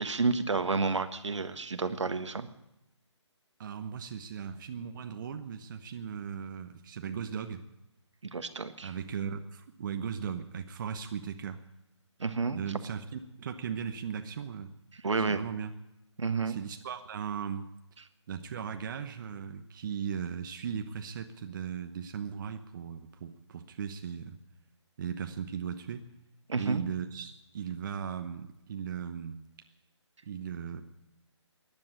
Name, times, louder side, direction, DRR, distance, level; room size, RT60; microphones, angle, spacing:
voice 1, 0.0-2.5 8.3-8.9 12.2-12.6 15.0-15.4 16.2-16.6 26.5-26.8, right 4 dB, 75° right, 10 dB, 1.4 m, -30 dB
voice 2, 3.6-7.6 8.8-11.6 12.5-14.7 15.2-15.7 16.4-17.7 18.3-24.4 25.0-26.0 26.6-29.4 30.2-30.8, right 7 dB, 40° right, 7 dB, 1.0 m, -37 dB
14.5 x 10.5 x 8.6 m, 0.90 s
figure-of-eight pair, 145°, 15 cm